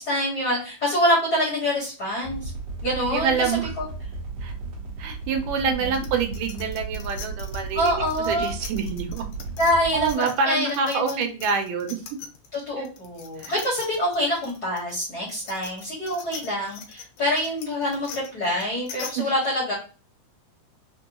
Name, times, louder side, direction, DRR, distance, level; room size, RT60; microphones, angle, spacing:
voice 1, 0.0-2.5 2.8-3.9 5.8-5.9 7.7-8.5 9.6-11.2 12.5-19.7, equal, 55° left, -5 dB, 1.1 m, -26 dB
sound 1, 2.2-10.1, right 3 dB, 55° right, 1.9 m, -35 dB
voice 2, 3.1-3.7 4.4-4.5 5.0-7.9 8.3-9.3 9.9-12.0 12.8-12.9 13.4-13.5 19.2-19.3, right 5 dB, 85° right, 5 dB, 2.2 m, -26 dB
sound 2, 5.9-12.6 12.9-19.1, left 6 dB, 75° left, 1.9 m, -41 dB
5.0 x 2.3 x 2.9 m, 0.36 s
omnidirectional pair, 3.7 m